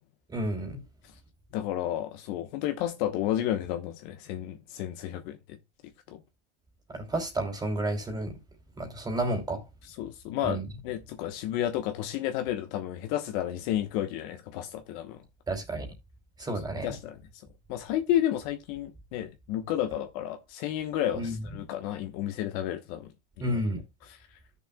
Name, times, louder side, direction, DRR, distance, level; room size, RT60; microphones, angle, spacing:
voice 1, 0.3-0.8 6.9-8.3 8.8-9.6 10.4-10.7 15.5-15.9 16.4-17.0 21.1-21.4 23.4-23.8, right 1 dB, 10° right, 2.9 m, -31 dB
voice 2, 1.5-5.6 6.1-6.2 10.0-15.2 16.4-16.5 16.8-17.2 17.7-23.1, left 12 dB, 40° left, 1.1 m, -31 dB
13.5 x 6.7 x 2.2 m
hypercardioid pair, 135°, 34 cm